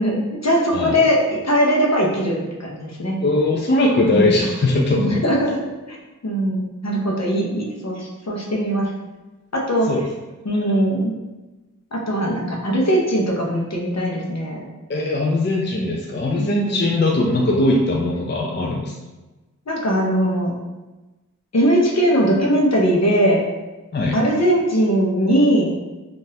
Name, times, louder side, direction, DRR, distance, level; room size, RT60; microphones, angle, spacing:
voice 1, 0.0-3.2 4.0-4.4 4.9-5.6 5.9-6.0 6.2-8.9 9.5-9.9 10.4-11.1 11.9-14.6 16.4-16.9 19.7-20.5 21.5-23.4 24.1-25.8, equal, 55° left, -2 dB, 0.8 m, -20 dB
voice 2, 3.2-5.2 9.8-10.0 14.9-18.9 23.9-24.2, left 2 dB, 35° left, -2 dB, 0.4 m, -20 dB
3.7 x 2.5 x 2.7 m, 1.1 s
wide cardioid pair, 45°, 32 cm